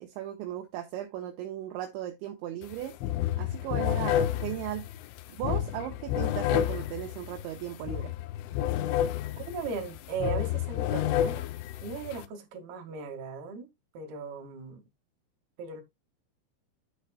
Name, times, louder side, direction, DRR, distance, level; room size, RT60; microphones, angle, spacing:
voice 1, 0.0-3.0 3.4-5.0 5.3-8.1, right 12 dB, 75° right, 3.2 m, -37 dB
sound 1, 2.6-2.8 3.0-12.3, left 11 dB, 80° left, 3.1 m, -30 dB
voice 2, 9.4-11.4 11.8-14.8 15.6-15.8, right 5 dB, 60° right, 3.5 m, -37 dB
10.5 x 7.9 x 2.2 m
omnidirectional pair, 5.7 m